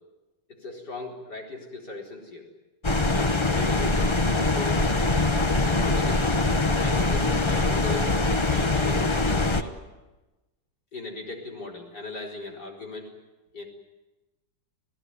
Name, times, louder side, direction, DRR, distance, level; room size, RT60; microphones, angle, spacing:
voice 1, 0.5-2.5 3.1-4.9 5.6-9.8 10.9-13.2 13.5-13.6, left 3 dB, 60° left, 0 dB, 4.9 m, -38 dB
sound 1, 2.8-9.6, left 2 dB, 20° left, 0.7 m, -23 dB
27.5 x 17.0 x 9.7 m, 1.1 s
omnidirectional pair, 2.0 m